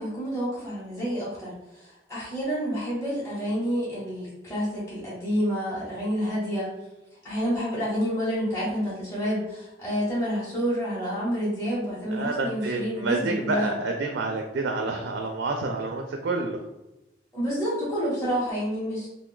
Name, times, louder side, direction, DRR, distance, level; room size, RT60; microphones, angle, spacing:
voice 1, 0.0-6.7 7.2-13.8 17.3-19.1, equal, 15° left, -9 dB, 0.9 m, -29 dB
voice 2, 12.1-16.6, right 3 dB, 75° right, 3 dB, 0.4 m, -28 dB
2.5 x 2.2 x 3.8 m, 0.99 s
head